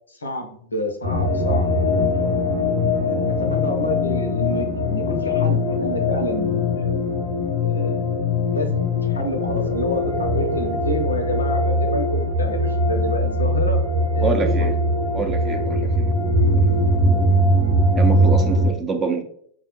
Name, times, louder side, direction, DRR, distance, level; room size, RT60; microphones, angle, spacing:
voice 1, 0.1-1.7 2.1-2.3 3.0-6.9 7.6-13.8 14.1-14.7, equal, 75° left, 6 dB, 0.5 m, -29 dB
sound 1, 1.0-18.7, left 1 dB, 85° right, 1.1 m, -21 dB
voice 2, 14.2-14.7 15.1-16.1 16.5-16.6 18.0-19.2, right 4 dB, 20° right, 4 dB, 0.5 m, -26 dB
4.8 x 2.0 x 2.9 m, 0.62 s
figure-of-eight pair, 90°, 0 cm